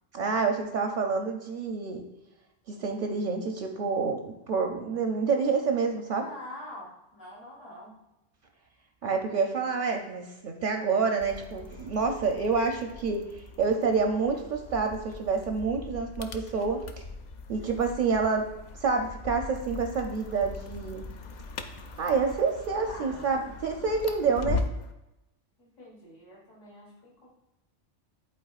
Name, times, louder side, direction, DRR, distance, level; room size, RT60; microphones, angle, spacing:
voice 1, 0.1-2.0 2.7-6.2 9.0-17.0 17.5-18.5 18.8-21.1 22.0-24.6, right 5 dB, 55° right, 3 dB, 0.6 m, -28 dB
voice 2, 6.2-8.0 22.9-23.3 25.6-27.3, left 1 dB, 80° left, -4 dB, 1.9 m, -45 dB
sound 1, 11.2-24.9, left 3 dB, 60° left, 0.4 m, -40 dB
11.0 x 4.4 x 2.4 m, 0.93 s
omnidirectional pair, 1.3 m